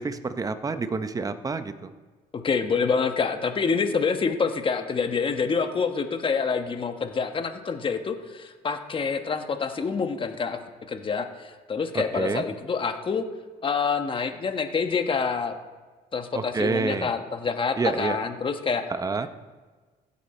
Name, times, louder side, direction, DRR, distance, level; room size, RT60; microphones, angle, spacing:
voice 1, 0.0-1.9 12.1-12.4 16.3-17.1 17.8-18.2 18.9-19.3, right 4 dB, 20° right, 10 dB, 0.7 m, -28 dB
voice 2, 2.3-10.6 10.9-13.2 13.6-15.5 16.1-18.8, left 5 dB, 30° left, 7 dB, 1.2 m, -27 dB
15.5 x 8.5 x 4.3 m, 1.4 s
cardioid pair, 110°, 17 cm